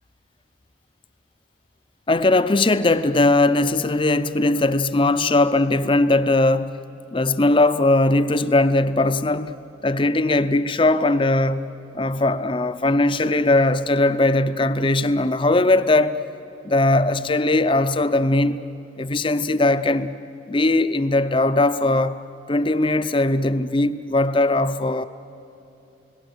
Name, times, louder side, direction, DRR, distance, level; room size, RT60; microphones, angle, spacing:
voice 1, 2.1-6.8 7.1-9.5 9.8-16.2 16.6-18.7 19.0-20.2 20.5-22.2 22.5-25.0, left 2 dB, 25° left, 0.6 m, -19 dB
30.0 x 18.0 x 8.0 m
head